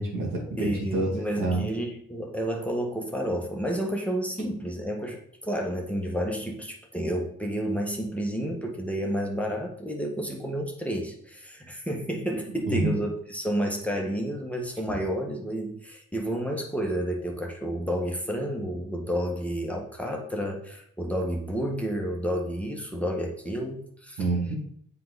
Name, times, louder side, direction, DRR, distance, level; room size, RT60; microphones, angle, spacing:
voice 1, 0.0-1.6 12.7-12.9 24.2-24.6, right 2 dB, 75° right, -2 dB, 2.4 m, -27 dB
voice 2, 0.6-24.3, equal, 5° left, 0 dB, 1.6 m, -30 dB
7.6 x 4.7 x 4.1 m, 0.69 s
cardioid pair, 65°, 33 cm